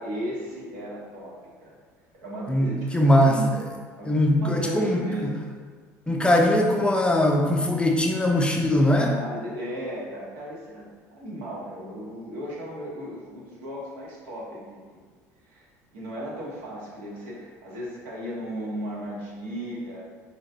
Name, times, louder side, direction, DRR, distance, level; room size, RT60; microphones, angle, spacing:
voice 1, 0.0-1.8 2.1-3.6 4.0-5.4 9.1-15.0 15.4-15.7 15.9-20.0, equal, 70° right, -5 dB, 1.2 m, -35 dB
voice 2, 2.5-3.6 4.0-5.3 6.1-9.1, left 1 dB, 10° left, 0 dB, 0.5 m, -21 dB
4.8 x 2.8 x 2.7 m, 1.5 s
hypercardioid pair, 70°, 9 cm